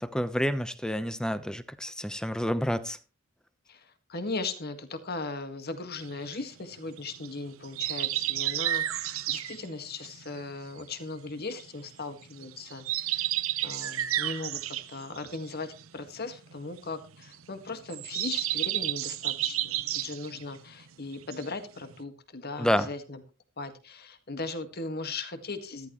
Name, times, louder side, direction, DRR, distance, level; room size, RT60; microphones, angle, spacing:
voice 1, 0.0-3.0 22.6-22.9, equal, 5° left, 12 dB, 0.9 m, -29 dB
voice 2, 3.7-13.4 13.6-23.2 23.6-25.9, left 3 dB, 50° left, 8 dB, 1.8 m, -38 dB
sound 1, 6.0-11.9 12.2-20.9 21.1-21.9, right 14 dB, 80° right, 0.8 m, -32 dB
14.0 x 14.0 x 3.1 m, 0.32 s
head